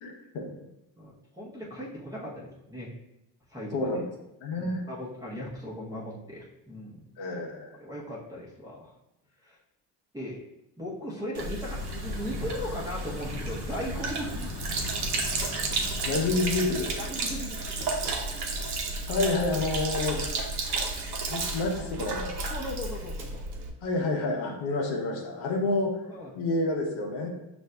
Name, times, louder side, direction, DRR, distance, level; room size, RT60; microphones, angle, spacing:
voice 1, 0.0-0.5 3.7-4.0 4.4-4.8 7.2-7.8 16.1-17.0 19.1-20.2 21.3-22.4 23.8-26.0 26.3-27.3, left 2 dB, 80° left, 1 dB, 0.9 m, -29 dB
voice 2, 1.0-2.9 3.5-3.9 4.6-7.0 7.7-8.9 9.4-9.6 10.1-10.4 10.8-14.5 14.9-15.1 17.0-18.2 20.1-20.2 22.5-23.4 26.1-26.3, equal, 10° right, -7 dB, 0.8 m, -38 dB
Sink (filling or washing), 11.3-23.7, right 3 dB, 55° right, 0.9 m, -32 dB
Aircraft, 11.7-17.8, left 3 dB, 40° left, 0.5 m, -42 dB
6.2 x 2.6 x 2.2 m, 0.88 s
cardioid pair, 95°, 45 cm